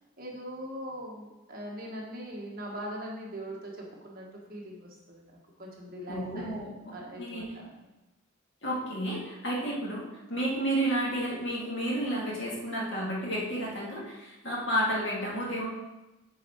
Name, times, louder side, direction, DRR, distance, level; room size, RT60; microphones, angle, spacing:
voice 1, 0.2-5.3 5.6-6.6 6.9-7.8, equal, 45° right, -2 dB, 1.4 m, -41 dB
voice 2, 6.1-7.5 8.6-10.0 10.3-15.7, right 1 dB, 55° left, -5 dB, 2.3 m, -31 dB
8.4 x 4.7 x 4.5 m, 1.0 s
head